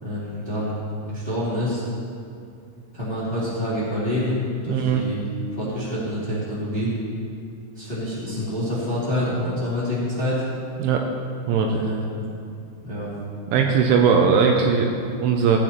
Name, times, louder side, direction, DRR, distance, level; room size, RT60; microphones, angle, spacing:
voice 1, 0.0-0.8 1.1-1.8 2.9-4.4 4.6-5.2 5.5-6.9 7.7-10.4 11.7-12.2 12.8-13.1, left 1 dB, 15° left, -10 dB, 1.9 m, -27 dB
voice 2, 4.7-5.0 10.8-11.0 11.5-11.8 13.5-15.6, right 6 dB, 80° right, 2 dB, 3.0 m, -19 dB
18.0 x 8.6 x 3.0 m, 2.4 s
omnidirectional pair, 5.8 m